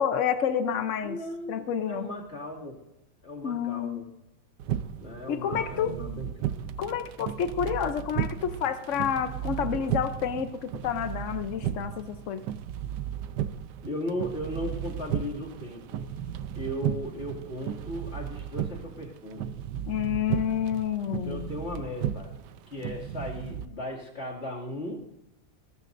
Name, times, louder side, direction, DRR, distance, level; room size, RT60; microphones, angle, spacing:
voice 1, 0.0-1.2 1.5-2.1 3.4-4.0 5.3-5.9 6.8-12.4 19.9-21.5, left 8 dB, 80° left, 9 dB, 0.6 m, -29 dB
voice 2, 1.0-2.8 3.2-4.1 5.0-6.8 13.8-16.1 16.6-19.5 21.1-22.3 22.7-25.0, left 1 dB, 30° left, -2 dB, 2.6 m, -37 dB
sound 1, 4.6-23.7, right 10 dB, 65° right, 1.1 m, -35 dB
19.5 x 19.0 x 2.6 m, 0.90 s
omnidirectional pair, 2.3 m